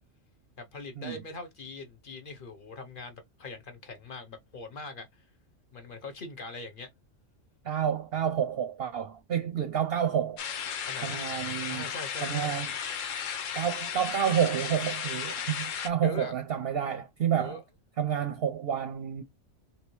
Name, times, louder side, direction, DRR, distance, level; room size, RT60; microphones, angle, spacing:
voice 1, 0.6-5.2 5.7-6.9 10.9-11.3 11.7-12.5 16.0-16.3 17.4-17.6, left 3 dB, 45° left, 0.9 m, -42 dB
voice 2, 7.6-10.4 11.0-11.8 12.2-12.7 13.5-17.6 18.0-19.2, right 9 dB, 60° right, 0.7 m, -29 dB
sound 1, 10.4-15.9, left 8 dB, 75° left, 1.0 m, -35 dB
3.6 x 2.6 x 3.0 m
omnidirectional pair, 1.4 m